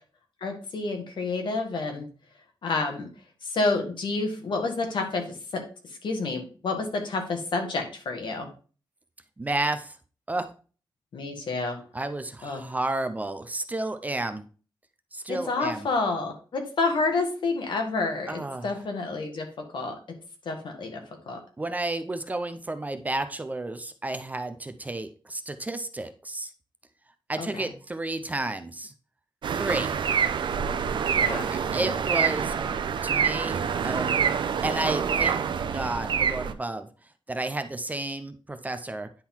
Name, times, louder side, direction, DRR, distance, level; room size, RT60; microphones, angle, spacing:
voice 1, 0.4-2.1 2.6-3.1 3.4-8.5 11.1-11.8 12.4-12.6 15.3-19.9 20.5-21.4 27.4-27.6 31.2-31.5, left 3 dB, 70° left, 3 dB, 1.8 m, -29 dB
voice 2, 9.4-10.0 10.3-10.5 11.9-14.4 15.1-15.9 18.3-18.7 21.6-26.5 27.3-28.9 29.6-30.0 31.3-32.5 33.0-34.2 34.6-35.4 35.7-36.9 37.3-39.1, right 2 dB, 20° right, 8 dB, 0.6 m, -31 dB
sound 1, 29.4-36.5, right 7 dB, 75° right, 0.6 m, -26 dB
10.0 x 3.9 x 4.4 m, 0.38 s
wide cardioid pair, 140°, 8 cm